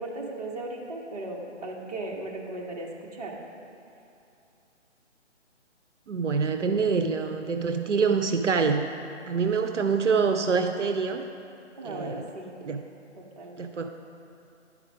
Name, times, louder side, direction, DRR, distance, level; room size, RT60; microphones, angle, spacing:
voice 1, 0.0-3.4 11.8-12.5 13.2-13.7, right 2 dB, 30° right, -1 dB, 0.9 m, -37 dB
voice 2, 6.1-8.8 9.3-11.2 11.8-12.3 12.6-12.8 13.6-13.9, right 5 dB, 80° right, 6 dB, 0.5 m, -25 dB
10.5 x 4.9 x 4.9 m, 2.7 s
figure-of-eight pair, 145°, 36 cm